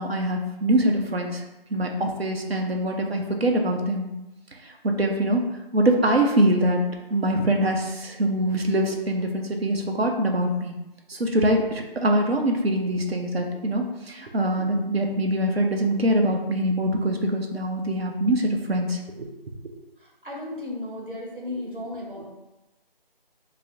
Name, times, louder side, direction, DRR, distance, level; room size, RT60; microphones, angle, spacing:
voice 1, 0.0-1.4 1.7-4.1 4.8-5.4 5.7-6.8 7.1-10.8 11.1-19.3, right 1 dB, 85° right, 2 dB, 0.7 m, -23 dB
voice 2, 20.0-22.3, left 1 dB, 60° right, -3 dB, 1.0 m, -35 dB
4.7 x 2.0 x 2.7 m, 0.99 s
figure-of-eight pair, 175°, 30 cm